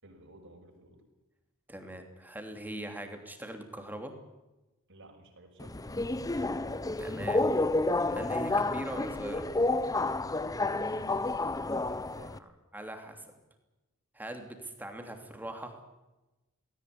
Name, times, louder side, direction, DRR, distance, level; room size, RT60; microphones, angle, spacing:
voice 1, 0.0-1.0 4.9-6.0 10.7-11.2 11.9-12.3, right 2 dB, 60° right, 1 dB, 6.2 m, -53 dB
voice 2, 1.7-4.1 7.0-7.4 8.1-9.5 12.4-13.3 14.1-15.8, right 1 dB, 10° right, 4 dB, 3.1 m, -41 dB
Subway metro underground, 5.6-12.4, left 2 dB, 15° left, 0.7 m, -30 dB
19.0 x 18.0 x 9.7 m, 1.0 s
head